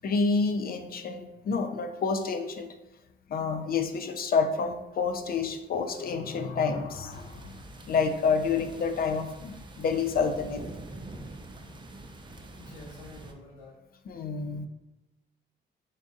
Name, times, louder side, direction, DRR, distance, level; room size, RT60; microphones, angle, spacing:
voice 1, 0.0-2.7 3.3-7.6 7.9-10.6 14.1-14.7, left 5 dB, 50° left, 7 dB, 0.4 m, -28 dB
sound 1, 7.1-13.3, right 2 dB, 25° right, 0.5 m, -45 dB
voice 2, 12.6-13.7, left 2 dB, 75° left, -5 dB, 1.2 m, -48 dB
3.8 x 2.5 x 3.7 m, 0.99 s
cardioid pair, 90°, 20 cm